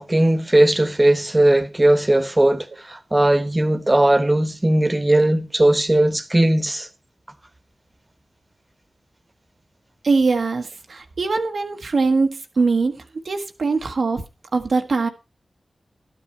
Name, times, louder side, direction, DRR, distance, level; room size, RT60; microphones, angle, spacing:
voice 1, 0.0-6.9, right 1 dB, 25° right, 1.3 m, -18 dB
voice 2, 10.0-12.9 13.2-14.2 14.5-15.1, right 4 dB, 75° right, 1.2 m, -21 dB
12.0 x 9.1 x 4.3 m
cardioid pair, 45°, 0 cm